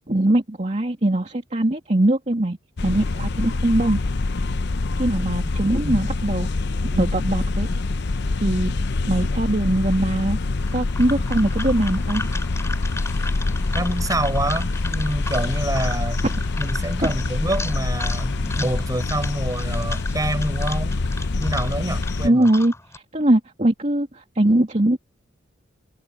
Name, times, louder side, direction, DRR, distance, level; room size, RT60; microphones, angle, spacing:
voice 1, 0.1-2.6 2.8-4.0 5.0-6.5 6.9-7.7 8.4-8.7 9.0-10.4 10.7-12.2 16.2-16.4 22.2-25.0, right 1 dB, 35° right, 2.5 m, -21 dB
sound 1, 2.8-22.3, left 3 dB, 60° left, 0.7 m, -25 dB
voice 2, 5.6-6.0 13.7-16.2 16.6-21.0 21.4-22.5, right 1 dB, 20° right, 7.7 m, -27 dB
sound 2, 10.6-23.0, left 2 dB, 15° left, 4.5 m, -35 dB
head